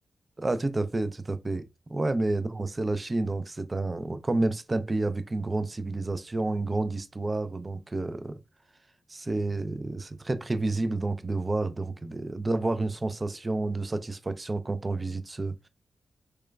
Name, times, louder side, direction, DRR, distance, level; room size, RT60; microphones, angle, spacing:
voice 1, 0.4-8.4 9.1-15.7, right 2 dB, 35° right, 0.4 m, -30 dB
3.0 x 2.3 x 2.2 m
supercardioid pair, 45°, 0 cm